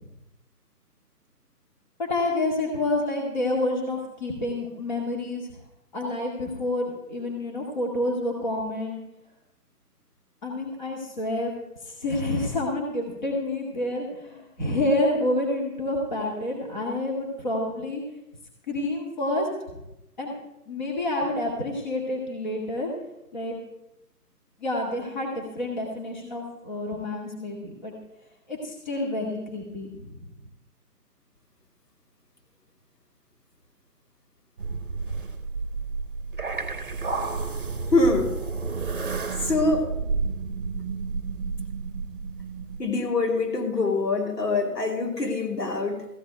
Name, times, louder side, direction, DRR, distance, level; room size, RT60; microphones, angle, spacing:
voice 1, 2.0-5.4 5.9-9.0 10.4-11.5 11.9-18.0 18.7-19.5 20.2-20.3 20.7-22.9 23.3-23.6 24.6-27.9 28.5-30.2, left 1 dB, 30° left, -1 dB, 2.2 m, -28 dB
sound 1, 34.6-42.8, right 4 dB, 35° right, 1.1 m, -31 dB
voice 2, 37.9-38.3 39.4-39.9 42.8-46.1, left 3 dB, 75° left, 1 dB, 3.1 m, -24 dB
15.0 x 5.9 x 9.1 m, 0.90 s
hypercardioid pair, 170°, 48 cm